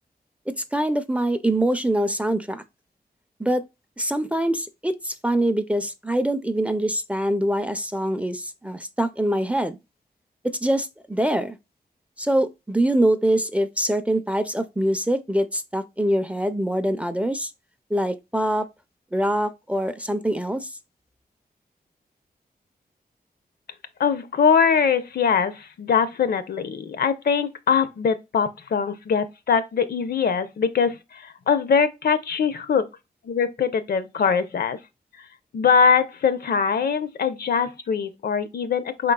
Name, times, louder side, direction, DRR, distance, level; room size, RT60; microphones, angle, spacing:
voice 1, 0.5-2.6 3.4-3.6 4.0-9.8 10.4-11.6 12.2-17.5 17.9-18.7 19.1-20.7, right 1 dB, 10° right, 0.4 m, -24 dB
voice 2, 24.0-32.9 33.2-34.8 35.5-39.1, left 6 dB, 70° left, 0.6 m, -22 dB
4.6 x 3.7 x 2.2 m
wide cardioid pair, 140°, 16 cm